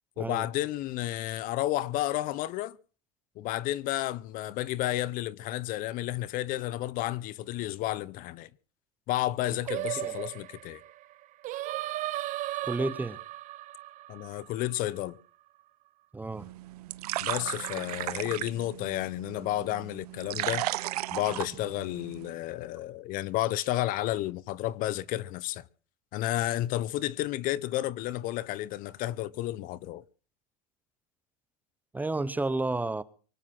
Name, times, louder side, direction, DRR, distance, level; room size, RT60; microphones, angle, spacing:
voice 1, 0.2-2.8 3.4-8.5 9.1-10.8 14.1-15.2 17.2-20.7 21.1-25.7 26.1-30.0, left 15 dB, 45° left, 0.8 m, -31 dB
Singing, 9.7-15.0, right 16 dB, 40° right, 1.0 m, -36 dB
voice 2, 12.6-13.2 16.1-16.5 31.9-33.0, right 2 dB, 10° right, 0.8 m, -31 dB
sound 1, 16.4-22.3, right 16 dB, 85° right, 0.9 m, -35 dB
24.5 x 9.7 x 5.9 m
supercardioid pair, 130°, 19 cm